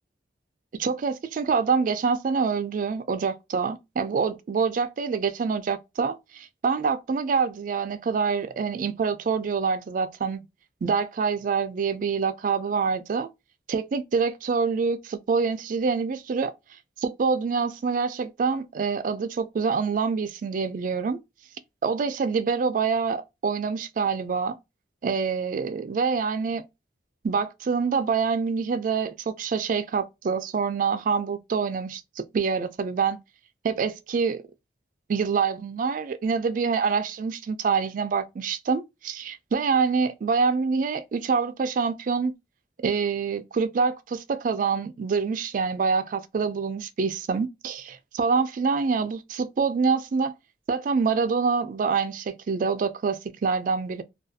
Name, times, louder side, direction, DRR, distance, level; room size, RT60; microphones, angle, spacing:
voice 1, 0.8-10.5 10.8-13.3 13.7-16.5 17.0-21.2 21.8-24.6 25.0-26.6 27.2-33.2 33.6-34.4 35.1-42.3 42.8-50.3 50.7-54.0, right 5 dB, 45° right, 0.3 m, -26 dB
2.4 x 2.3 x 2.5 m
head